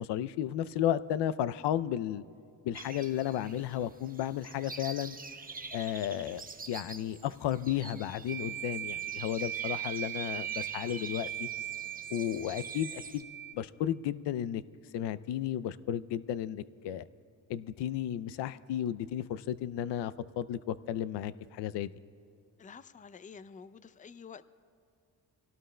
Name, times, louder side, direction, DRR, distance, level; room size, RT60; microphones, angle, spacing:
voice 1, 0.0-2.2 2.6-5.2 5.7-11.5 12.1-13.2 13.5-14.6 14.9-17.0 17.5-21.9, left 11 dB, 85° left, 16 dB, 0.5 m, -33 dB
sound 1, 2.7-13.2, right 4 dB, 20° right, 0.9 m, -47 dB
sound 2, 8.3-13.5, right 12 dB, 50° right, 1.7 m, -39 dB
voice 2, 22.6-24.4, left 6 dB, 20° left, 14 dB, 0.4 m, -49 dB
25.5 x 17.5 x 2.2 m, 2.4 s
cardioid pair, 85°, 40 cm